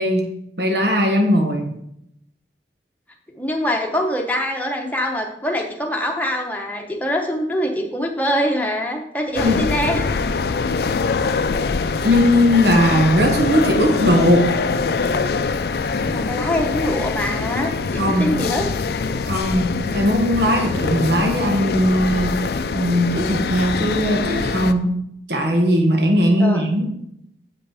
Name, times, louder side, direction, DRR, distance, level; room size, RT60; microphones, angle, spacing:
voice 1, 0.0-1.8 9.4-9.6 12.0-14.6 17.9-18.4 19.2-25.0 25.3-26.9, equal, 80° right, 3 dB, 1.3 m, -19 dB
voice 2, 3.4-10.1 16.1-18.7 26.4-26.6, equal, 10° left, 1 dB, 1.0 m, -24 dB
sound 1, 9.4-24.7, left 4 dB, 65° left, 0.4 m, -23 dB
7.6 x 5.5 x 4.9 m, 0.76 s
head